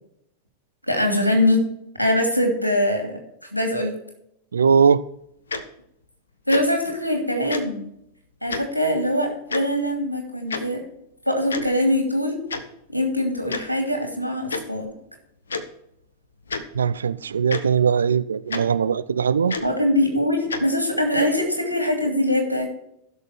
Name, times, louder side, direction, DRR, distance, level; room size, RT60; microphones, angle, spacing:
voice 1, 0.9-1.6 2.0-3.2 3.5-3.9 6.5-7.8 8.4-10.8 11.3-12.4 12.9-14.9 19.6-22.7, left 1 dB, 90° left, 2.7 m, -22 dB
voice 2, 4.5-5.0 16.7-19.6, right 6 dB, 70° right, 0.5 m, -20 dB
Tick-tock, 5.5-5.6 6.5-6.6 7.5-7.6 8.5-8.6 9.5-9.6 10.5-10.6 11.5-11.7 12.5-12.6 13.5-13.6 14.5-14.6 15.5-15.6 16.5-16.6 17.5-17.6 18.5-18.6 19.5-19.7 20.5-20.6, left 4 dB, 70° left, 1.0 m, -28 dB
15.5 x 6.6 x 4.5 m
figure-of-eight pair, 90°, 0 cm